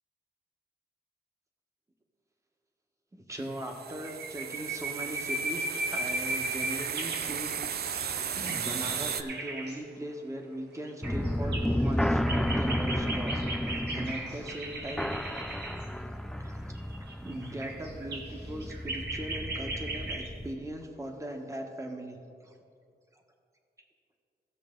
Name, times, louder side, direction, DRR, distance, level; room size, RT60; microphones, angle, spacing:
voice 1, 3.1-15.1 16.4-16.7 17.2-22.2 22.4-22.5, right 1 dB, 20° right, 3 dB, 1.2 m, -39 dB
sound 1, 3.3-3.4 3.7-3.8 4.0-7.3 8.0-9.8 10.9-15.9 16.8-20.3, right 2 dB, 90° right, 1.7 m, -37 dB
sound 2, 3.5-9.2, right 8 dB, 70° right, 0.5 m, -35 dB
sound 3, 11.0-20.5, equal, 5° left, 0.3 m, -32 dB
16.5 x 6.9 x 3.8 m, 2.3 s
wide cardioid pair, 125°, 17 cm